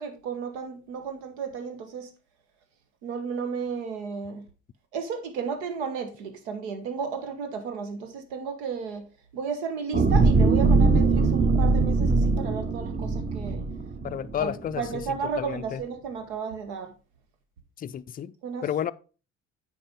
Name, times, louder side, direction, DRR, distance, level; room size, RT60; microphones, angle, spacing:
voice 1, 0.0-2.1 3.0-4.4 4.9-9.0 9.3-13.6 14.4-16.9 18.4-18.7, right 6 dB, 75° right, 1.3 m, -33 dB
sound 1, 9.9-14.4 14.9-15.1, right 3 dB, 25° right, 1.0 m, -21 dB
voice 2, 14.0-15.8 17.8-18.3 18.6-18.9, left 9 dB, 25° left, 0.4 m, -31 dB
8.8 x 4.8 x 3.6 m
hypercardioid pair, 60°, 34 cm